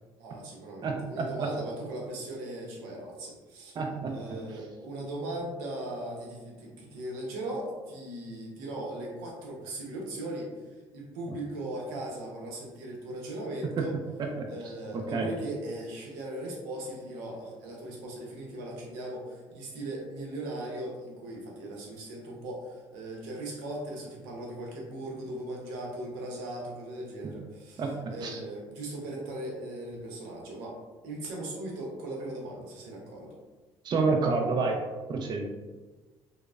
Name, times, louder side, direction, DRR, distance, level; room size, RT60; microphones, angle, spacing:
voice 1, 0.2-3.8 4.1-10.5 10.9-14.0 14.5-30.8 31.0-33.3, right 1 dB, 85° right, -2 dB, 0.7 m, -38 dB
voice 2, 0.8-1.5 3.8-4.1 13.8-13.9 14.2-14.5 15.1-15.3 27.2-27.3 27.8-28.4 33.8-34.8 35.1-35.5, right 4 dB, 40° right, 2 dB, 0.4 m, -29 dB
3.0 x 2.0 x 2.4 m, 1.3 s
supercardioid pair, 70°, 11 cm